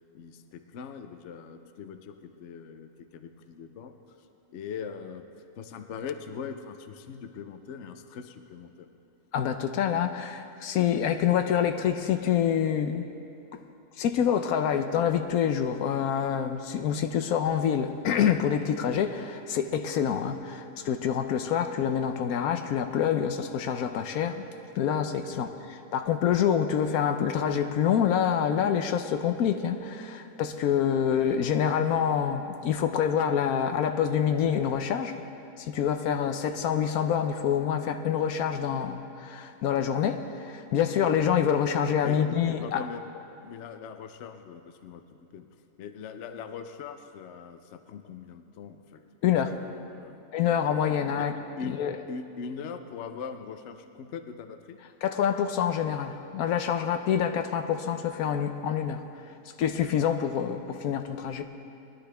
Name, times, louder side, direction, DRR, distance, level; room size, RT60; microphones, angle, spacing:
voice 1, 0.1-3.9 4.5-5.3 5.6-8.9 25.3-25.5 42.0-43.1 43.4-45.0 45.3-45.5 45.8-49.0 49.3-50.2 51.1-51.3 51.6-51.8 52.1-54.8, left 6 dB, 60° left, 7 dB, 0.9 m, -41 dB
voice 2, 9.3-13.0 14.0-24.4 24.8-35.2 35.6-42.9 49.2-49.6 50.3-51.3 51.6-52.0 55.0-59.1 59.6-61.4, left 8 dB, 80° left, 8 dB, 1.1 m, -26 dB
20.5 x 11.5 x 3.4 m, 2.7 s
omnidirectional pair, 1.5 m